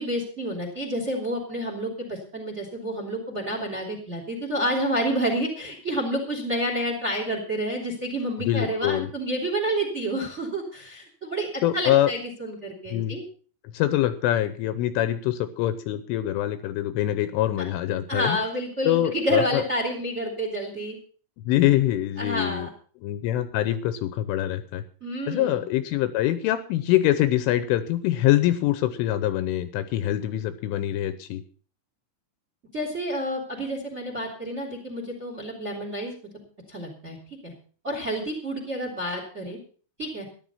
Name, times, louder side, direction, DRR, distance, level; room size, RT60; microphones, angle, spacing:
voice 1, 0.0-13.2 18.1-21.0 22.2-22.7 25.0-25.6 32.7-37.2 37.4-37.5 37.8-39.6 40.0-40.3, right 1 dB, 20° right, 4 dB, 2.2 m, -29 dB
voice 2, 8.4-9.1 11.6-12.1 12.9-13.2 13.7-18.4 18.8-19.6 21.4-22.7 23.0-24.8 25.3-31.4, left 13 dB, 80° left, 12 dB, 3.1 m, -24 dB
14.0 x 11.0 x 5.6 m, 0.42 s
omnidirectional pair, 6.0 m